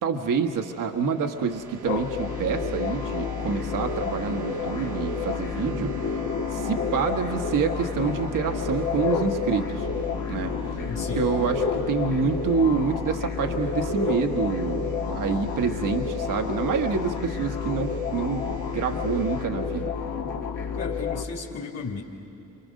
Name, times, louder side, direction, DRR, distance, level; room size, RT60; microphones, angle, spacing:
voice 1, 0.0-5.9 6.5-9.9 10.3-10.5 11.1-19.9, right 6 dB, 60° right, 5 dB, 1.4 m, -27 dB
sound 1, 0.9-19.5, right 5 dB, 85° right, 1.8 m, -41 dB
sound 2, 1.9-21.2, left 6 dB, 55° left, 1.8 m, -30 dB
voice 2, 10.7-11.3 20.8-22.0, left 5 dB, 35° left, -2 dB, 2.5 m, -35 dB
28.0 x 24.5 x 6.4 m, 2.9 s
supercardioid pair, 60°, 37 cm